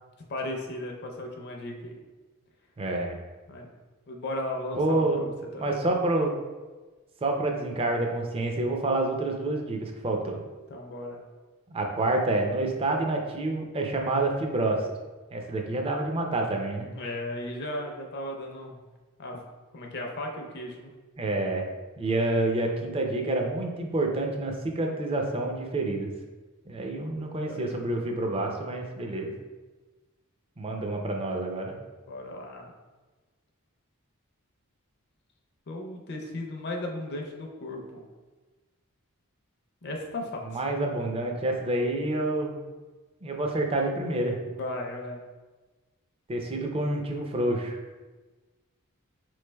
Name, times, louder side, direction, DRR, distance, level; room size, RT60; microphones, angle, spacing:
voice 1, 0.3-2.0 3.5-3.7 4.1-5.8 10.7-11.2 16.9-18.8 19.2-19.4 19.7-20.9 27.5-27.7 32.1-32.7 35.7-38.0 39.8-40.6 44.5-45.2, left 1 dB, 50° left, 1 dB, 0.5 m, -36 dB
voice 2, 2.8-3.2 4.7-5.2 5.6-6.3 7.2-10.4 11.7-14.9 15.3-16.9 21.2-21.7 22.0-26.1 26.7-29.3 30.6-31.8 40.4-42.6 43.2-44.4 46.3-47.8, right 2 dB, 25° right, 2 dB, 0.4 m, -28 dB
4.5 x 3.1 x 2.2 m, 1.3 s
head